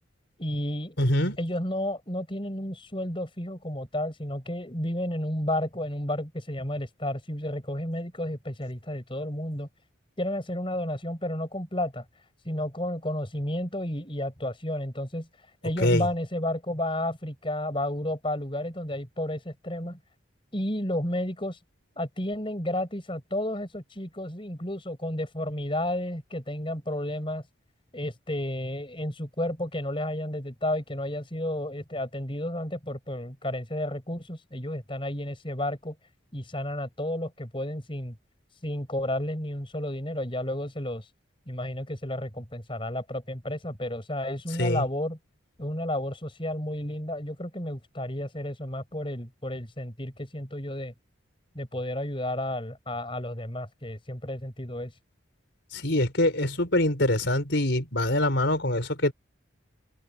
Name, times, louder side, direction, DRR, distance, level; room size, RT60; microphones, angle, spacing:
voice 1, 0.4-1.0 1.4-9.7 10.2-12.0 12.4-15.3 15.6-20.0 20.5-21.6 22.0-27.4 27.9-36.0 36.3-38.2 38.6-41.0 41.5-45.2 45.6-50.9 51.5-54.9, left 1 dB, 25° left, 6.0 m, -32 dB
voice 2, 1.0-1.4 15.8-16.1 44.6-44.8 55.7-59.1, left 1 dB, 65° left, 4.5 m, -24 dB
open air
head